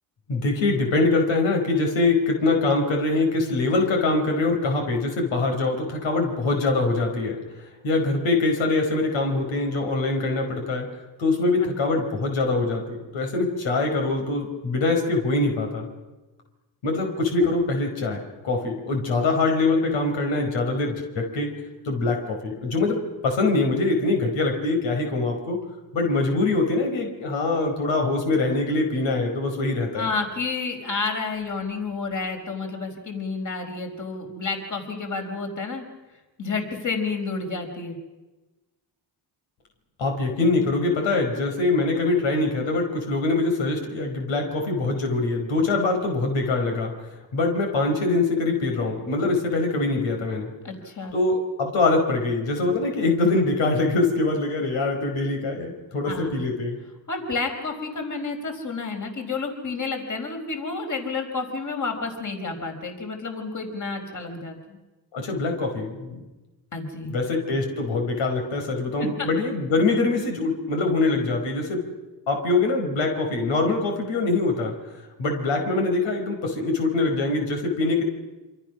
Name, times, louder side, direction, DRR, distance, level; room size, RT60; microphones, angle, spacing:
voice 1, 0.3-7.4 7.8-10.9 11.2-15.9 16.8-21.5 21.8-23.0 23.2-25.6 25.9-30.1 40.0-46.9 47.3-50.5 51.1-56.8 65.1-66.2 67.1-71.8 72.3-74.7 75.2-78.0, left 3 dB, 85° left, 3 dB, 5.2 m, -23 dB
voice 2, 30.0-35.8 36.4-38.0 50.6-51.1 56.1-56.4 57.1-64.8 66.7-67.1 69.2-69.3, left 4 dB, 40° left, 4 dB, 5.1 m, -30 dB
27.5 x 26.0 x 6.3 m, 1.1 s
cardioid pair, 90°, 45 cm